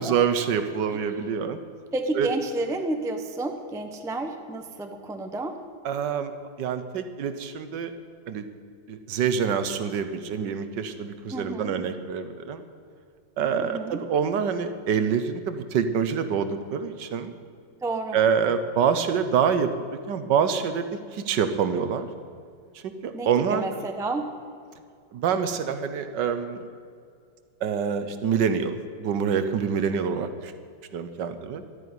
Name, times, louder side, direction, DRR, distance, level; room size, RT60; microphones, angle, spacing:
voice 1, 0.0-1.6 2.1-2.3 5.8-6.3 6.6-7.9 8.3-8.4 8.9-12.6 13.4-17.3 18.1-19.7 20.1-22.1 23.0-23.8 25.1-26.7 27.6-30.5 30.9-31.6, right 7 dB, 70° right, 10 dB, 1.5 m, -26 dB
voice 2, 1.9-5.5 11.3-11.7 13.6-14.0 17.8-18.2 23.1-24.3, right 2 dB, 5° right, 6 dB, 0.5 m, -30 dB
12.0 x 9.6 x 9.7 m, 2.3 s
omnidirectional pair, 2.0 m